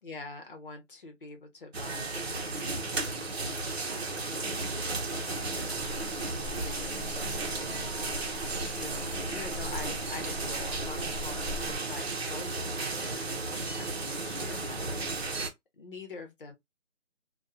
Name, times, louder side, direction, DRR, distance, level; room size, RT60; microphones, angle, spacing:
voice 1, 0.0-3.8 4.2-15.5 15.7-16.5, left 3 dB, 45° left, 0.9 m, -46 dB
sound 1, 1.7-15.5, right 3 dB, 55° right, 0.9 m, -34 dB
sound 2, 5.4-11.8, left 1 dB, ahead, 0.9 m, -42 dB
2.8 x 2.3 x 2.3 m
figure-of-eight pair, 165°, 37 cm